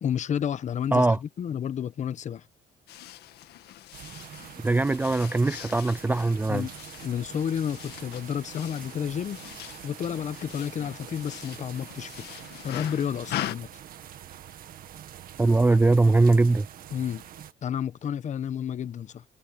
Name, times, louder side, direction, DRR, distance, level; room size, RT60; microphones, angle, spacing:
voice 1, 0.0-2.4 6.5-6.7 7.0-9.4 9.8-12.3 12.6-13.7 16.9-17.3 17.6-19.2, left 8 dB, 45° left, 1.1 m, -31 dB
sound 1, 2.9-13.5, left 13 dB, 75° left, 1.8 m, -41 dB
sound 2, 3.9-17.5, right 10 dB, 60° right, 1.9 m, -45 dB
voice 2, 4.6-6.7 15.4-16.7, right 3 dB, 10° right, 0.3 m, -21 dB
cardioid pair, 110°, 17 cm